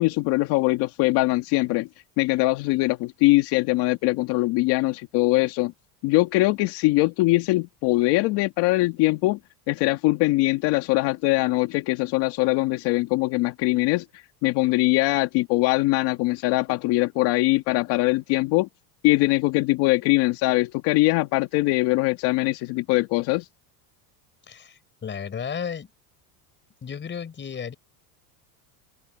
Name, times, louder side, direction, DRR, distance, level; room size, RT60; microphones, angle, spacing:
voice 1, 0.0-1.9 2.2-5.7 6.0-9.4 9.7-18.7 19.0-23.5, left 20 dB, 65° left, 1.8 m, -22 dB
voice 2, 24.5-25.9 26.8-27.8, left 7 dB, 25° left, 5.1 m, -33 dB
cardioid pair, 135°, 43 cm